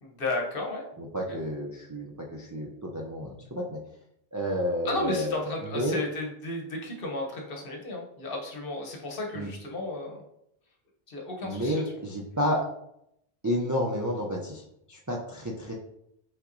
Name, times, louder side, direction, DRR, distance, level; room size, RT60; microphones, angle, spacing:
voice 1, 0.0-0.9 1.3-1.4 4.8-10.2 11.1-11.8, left 2 dB, 60° left, 1 dB, 1.1 m, -33 dB
voice 2, 1.0-3.8 4.3-6.0 9.3-9.5 11.4-12.6 13.4-15.7, equal, 30° right, -2 dB, 0.3 m, -31 dB
5.6 x 3.6 x 2.6 m, 0.78 s
omnidirectional pair, 1.1 m